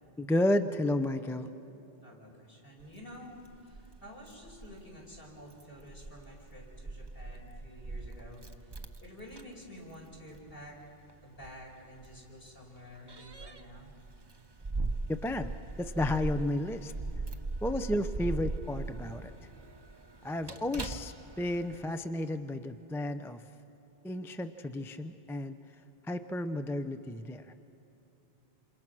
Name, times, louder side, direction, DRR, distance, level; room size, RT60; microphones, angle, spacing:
voice 1, 0.2-1.5 15.1-15.5 15.8-16.9 17.6-19.3 20.2-23.4 24.0-25.6 26.1-27.5, left 1 dB, 5° left, 9 dB, 0.4 m, -32 dB
voice 2, 2.0-10.8 11.2-13.9 19.1-19.2, equal, 55° left, -3 dB, 5.4 m, -50 dB
Keys jangling, 2.8-21.9, right 3 dB, 25° right, 0.8 m, -41 dB
28.0 x 27.5 x 6.1 m, 3.0 s
omnidirectional pair, 1.2 m